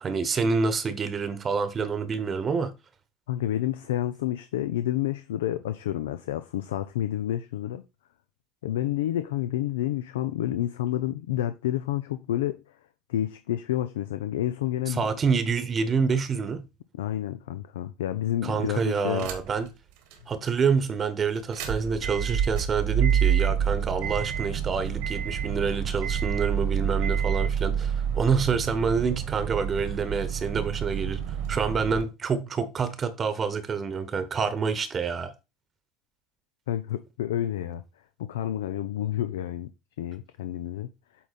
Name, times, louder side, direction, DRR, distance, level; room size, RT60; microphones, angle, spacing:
voice 1, 0.0-2.7 14.9-16.6 18.4-19.7 20.3-35.3, right 5 dB, 35° right, 1.0 m, -27 dB
voice 2, 3.3-7.8 8.6-12.6 13.1-15.1 16.9-19.3 36.7-37.8 38.2-39.7 40.0-40.9, left 12 dB, 80° left, 0.5 m, -29 dB
sound 1, 19.2-19.7 20.1-20.2 21.4-32.0, right 8 dB, 70° right, 1.5 m, -28 dB
8.3 x 3.8 x 4.1 m
hypercardioid pair, 75°, 0 cm